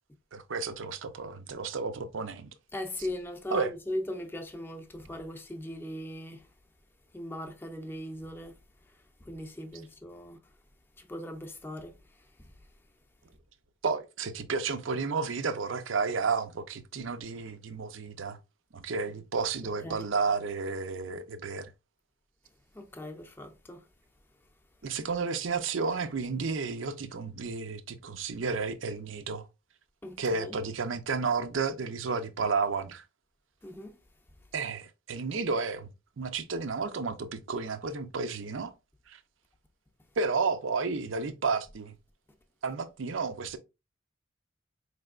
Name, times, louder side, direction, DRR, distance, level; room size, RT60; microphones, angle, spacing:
voice 1, 0.3-2.5 3.5-3.7 13.8-18.4 18.7-21.7 24.8-29.4 30.2-33.0 34.5-35.9 36.2-38.7 39.1-39.2 40.2-41.9 42.6-43.6, right 4 dB, 70° right, 0.6 m, -32 dB
voice 2, 2.7-6.4 7.1-8.5 9.2-10.4 11.0-12.0 12.4-12.5 19.8-20.0 22.7-23.8 30.0-30.6 33.6-34.0, left 1 dB, 10° left, 0.6 m, -39 dB
4.4 x 3.3 x 2.4 m
head